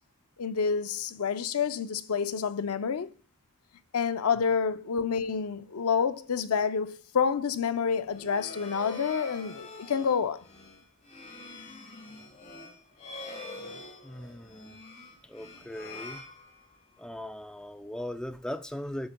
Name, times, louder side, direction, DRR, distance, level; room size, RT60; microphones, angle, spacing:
voice 1, 0.4-3.1 3.9-10.4, left 6 dB, 75° left, 0.5 m, -28 dB
sound 1, 8.0-17.0, left 3 dB, 35° left, 1.5 m, -45 dB
voice 2, 14.0-14.8 15.2-16.2 17.0-19.1, left 1 dB, 5° left, 0.3 m, -39 dB
8.6 x 7.0 x 2.2 m
head